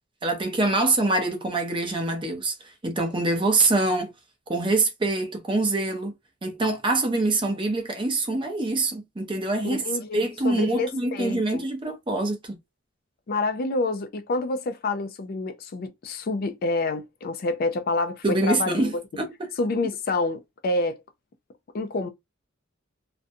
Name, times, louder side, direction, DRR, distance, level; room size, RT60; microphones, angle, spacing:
voice 1, 0.2-2.5 2.8-4.1 4.5-6.1 6.4-9.8 10.1-12.6 18.2-19.5, right 2 dB, 25° right, 0.6 m, -25 dB
voice 2, 9.6-11.6 13.3-18.9 19.6-21.0 21.7-22.1, left 2 dB, 45° left, 0.4 m, -28 dB
2.5 x 2.2 x 2.6 m
head